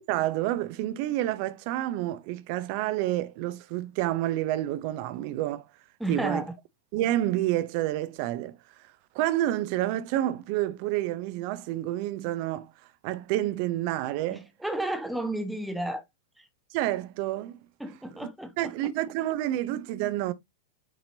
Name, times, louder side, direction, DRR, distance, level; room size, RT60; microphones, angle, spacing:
voice 1, 0.1-5.6 6.1-6.4 6.9-8.6 9.1-12.7 13.0-14.5 16.7-17.6 18.2-18.3 18.6-20.3, right 14 dB, 45° right, 0.8 m, -29 dB
voice 2, 6.0-6.5 14.3-16.1 16.4-16.5 17.8-18.7, right 1 dB, 5° right, 1.0 m, -32 dB
9.0 x 4.4 x 2.7 m
figure-of-eight pair, 90°, 0 cm